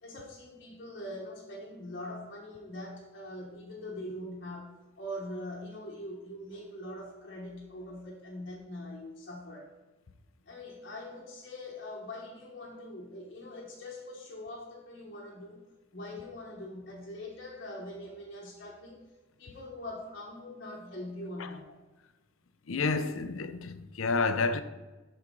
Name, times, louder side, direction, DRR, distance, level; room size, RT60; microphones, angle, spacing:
voice 1, 0.0-9.7 10.5-15.6 15.9-19.0 19.4-21.8, left 1 dB, 50° left, 1.2 m, -43 dB
voice 2, 22.7-24.6, left 4 dB, 80° left, 0.6 m, -29 dB
12.5 x 4.4 x 3.8 m
head